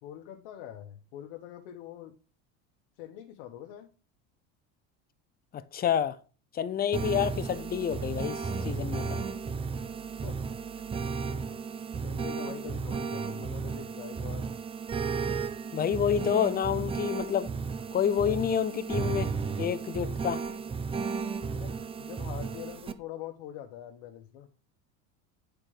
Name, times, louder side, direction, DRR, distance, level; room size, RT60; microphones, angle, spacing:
voice 1, 0.0-2.2 3.0-3.9 10.2-10.4 12.0-14.5 21.5-24.5, left 11 dB, 80° left, 1.2 m, -44 dB
voice 2, 5.5-6.2 6.5-9.2 15.7-17.5 17.9-19.3 19.6-20.4, left 8 dB, 25° left, 0.6 m, -28 dB
sound 1, 6.9-22.9, right 5 dB, 15° right, 0.5 m, -34 dB
9.6 x 4.5 x 4.9 m
supercardioid pair, 130°, 34 cm